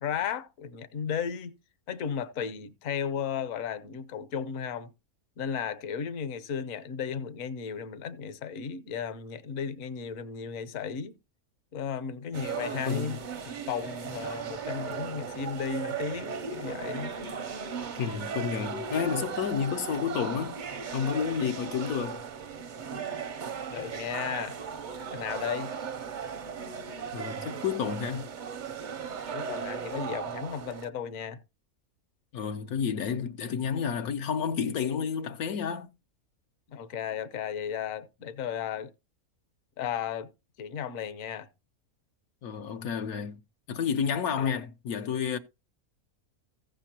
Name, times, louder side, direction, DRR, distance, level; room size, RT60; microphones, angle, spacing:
voice 1, 0.0-1.6 1.9-4.9 5.4-11.1 11.7-13.2 13.5-17.1 23.7-24.6 25.1-25.7 29.3-31.4 36.7-38.9 39.8-40.3 40.6-41.5 44.4-44.6, left 7 dB, 65° left, 1.2 m, -34 dB
sound 1, 12.3-30.9, right 6 dB, 50° right, 0.5 m, -37 dB
voice 2, 12.9-13.2 18.0-20.6 20.9-22.2 27.1-28.3 32.3-35.9 42.4-43.4 43.7-45.4, left 7 dB, 85° left, 1.3 m, -30 dB
15.0 x 7.6 x 2.9 m
omnidirectional pair, 1.5 m